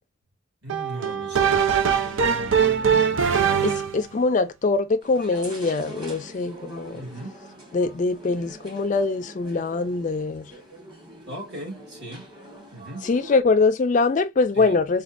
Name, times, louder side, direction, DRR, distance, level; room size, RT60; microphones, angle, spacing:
voice 1, 0.6-3.3 6.9-7.4 11.3-12.3 12.7-13.1 14.5-14.8, right 1 dB, 55° right, 1.8 m, -38 dB
sound 1, 0.7-4.0, right 7 dB, 75° right, 0.5 m, -21 dB
voice 2, 3.6-7.0 7.7-10.5 13.0-15.0, left 3 dB, 35° left, 0.3 m, -23 dB
sound 2, 5.0-13.4, right 1 dB, 20° right, 1.1 m, -44 dB
4.2 x 2.3 x 2.4 m
head